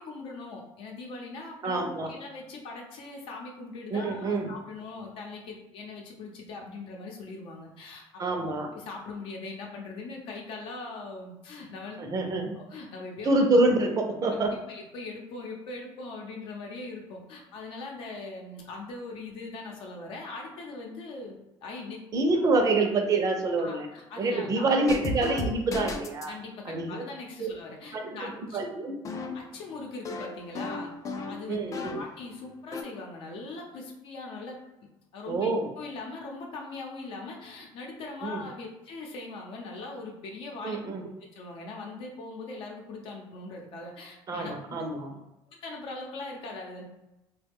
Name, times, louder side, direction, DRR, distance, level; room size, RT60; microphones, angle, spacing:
voice 1, 0.0-8.2 8.7-12.0 12.6-13.3 14.3-21.3 21.6-22.0 22.3-22.5 23.6-24.7 26.3-28.6 29.3-30.9 31.3-34.6 35.1-40.8 41.3-44.8 45.5-46.8, left 3 dB, 65° left, 0 dB, 0.7 m, -41 dB
voice 2, 1.6-2.1 3.9-4.5 8.2-8.7 12.0-12.5 13.2-14.5 22.1-23.9 24.2-26.3 26.7-27.0 27.4-27.5 27.9-29.0 31.5-32.0 35.3-35.7 38.2-38.4 40.6-41.1 44.3-45.1, right 2 dB, 40° right, 3 dB, 0.6 m, -26 dB
sound 1, 24.9-26.4 29.0-32.2 32.5-32.8, left 2 dB, 35° left, 0.4 m, -35 dB
3.1 x 2.2 x 3.5 m, 0.95 s
cardioid pair, 125°, 10 cm